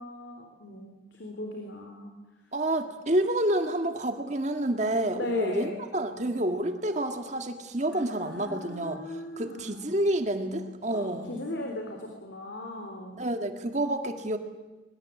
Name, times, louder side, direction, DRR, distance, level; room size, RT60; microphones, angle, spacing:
voice 1, 0.0-2.1 5.2-5.8 7.9-9.9 10.9-13.2, left 1 dB, 75° left, 3 dB, 3.7 m, -38 dB
voice 2, 2.5-11.3 13.2-14.4, right 1 dB, 40° right, 6 dB, 1.9 m, -29 dB
23.0 x 22.5 x 8.5 m, 1.1 s
head